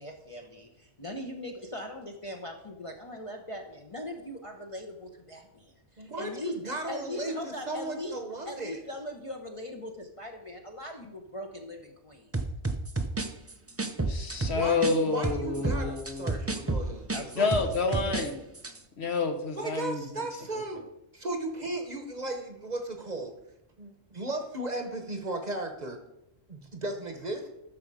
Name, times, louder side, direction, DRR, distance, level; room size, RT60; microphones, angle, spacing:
voice 1, 0.0-6.6 6.9-8.1 8.4-12.3 16.8-17.5 17.9-18.4, left 1 dB, 30° left, 1 dB, 0.8 m, -40 dB
voice 2, 6.0-8.8 14.5-17.7 19.6-20.8 21.1-23.3 23.8-26.0 26.5-27.5, right 2 dB, 40° right, 5 dB, 1.0 m, -36 dB
sound 1, 12.3-15.0 15.2-18.3 18.6-18.8, right 2 dB, 25° right, 0.3 m, -30 dB
voice 3, 14.1-16.3 17.4-18.3 19.0-20.0, left 4 dB, 60° left, 5 dB, 1.3 m, -28 dB
11.0 x 6.4 x 4.8 m, 0.87 s
omnidirectional pair, 1.2 m